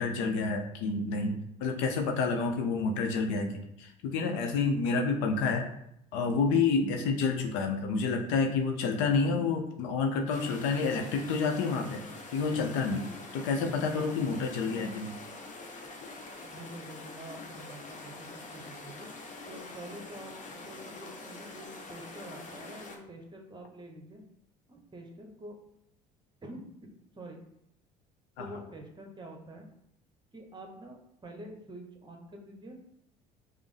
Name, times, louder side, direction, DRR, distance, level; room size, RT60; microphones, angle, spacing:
voice 1, 0.0-5.7 6.1-12.0 12.3-15.1 28.4-28.5, left 4 dB, 65° left, 4 dB, 0.6 m, -29 dB
sound 1, 10.3-23.0, left 3 dB, 40° left, 0.8 m, -45 dB
voice 2, 16.4-19.1 19.5-24.2 24.7-25.6 26.4-26.6 27.2-27.4 28.4-29.7 30.3-32.8, right 1 dB, 20° right, 2 dB, 0.9 m, -47 dB
5.0 x 2.0 x 3.3 m, 0.77 s
hypercardioid pair, 65°, 21 cm